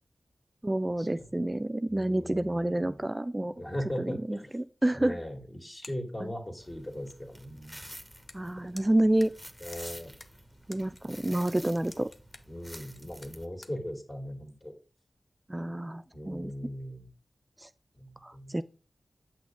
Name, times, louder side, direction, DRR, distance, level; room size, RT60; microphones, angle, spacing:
voice 1, 0.6-3.5 4.0-5.2 6.2-6.3 8.3-9.3 10.7-12.1 15.5-16.5 17.6-17.7 18.2-18.6, right 1 dB, 25° right, 0.3 m, -29 dB
voice 2, 1.9-3.0 3.6-4.6 4.9-7.9 9.6-10.1 12.5-14.7 16.1-17.1 17.9-18.5, equal, 35° left, 2.4 m, -39 dB
sound 1, 5.7-6.1 6.5-6.6 7.9-8.0 8.2-8.4 8.7-11.0 11.4-13.8, left 2 dB, 60° left, 0.7 m, -50 dB
sound 2, 6.6-13.5, equal, 10° left, 1.1 m, -49 dB
8.1 x 6.1 x 3.7 m
cardioid pair, 50°, 0 cm